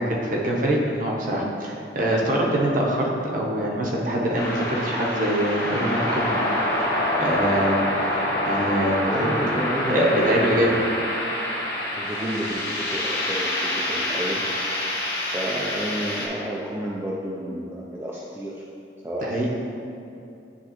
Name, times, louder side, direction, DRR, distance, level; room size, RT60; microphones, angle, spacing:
voice 1, 0.0-6.3 7.2-7.8 8.5-9.3 9.9-10.7 19.2-19.5, equal, 45° right, -3 dB, 0.9 m, -24 dB
sound 1, 4.3-16.3, left 1 dB, 55° left, 1.2 m, -26 dB
voice 2, 9.1-10.8 11.9-14.5 15.2-18.6 19.0-19.5, equal, 15° right, -5 dB, 0.4 m, -30 dB
10.0 x 3.6 x 3.0 m, 2.6 s
head